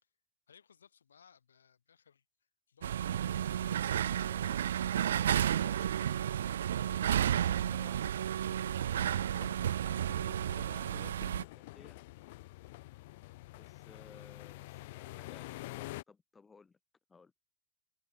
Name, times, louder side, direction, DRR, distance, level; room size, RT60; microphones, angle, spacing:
voice 1, 0.5-2.2 2.7-3.7 14.1-14.5, left 7 dB, 70° left, 4.5 m, -64 dB
sound 1, 2.8-11.4, right 10 dB, 65° right, 0.4 m, -32 dB
voice 2, 4.2-6.3 6.6-8.1 9.2-9.6 10.0-11.2 11.6-12.1 13.5-16.8 17.1-17.3, left 4 dB, 15° left, 2.6 m, -59 dB
sound 2, 8.4-16.0, left 20 dB, 50° left, 1.0 m, -48 dB
figure-of-eight pair, 90°, 0 cm